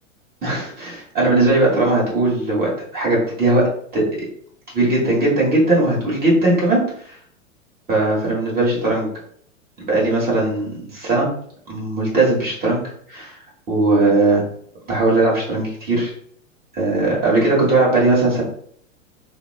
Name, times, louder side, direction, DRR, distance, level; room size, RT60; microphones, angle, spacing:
voice 1, 0.4-3.7 3.9-4.0 4.7-7.2 7.9-9.1 9.9-11.3 11.7-12.8 13.1-13.3 13.7-14.4 14.9-16.1 16.7-18.4, right 2 dB, 25° right, -5 dB, 1.4 m, -18 dB
2.8 x 2.0 x 2.4 m, 0.62 s
hypercardioid pair, 100°, 39 cm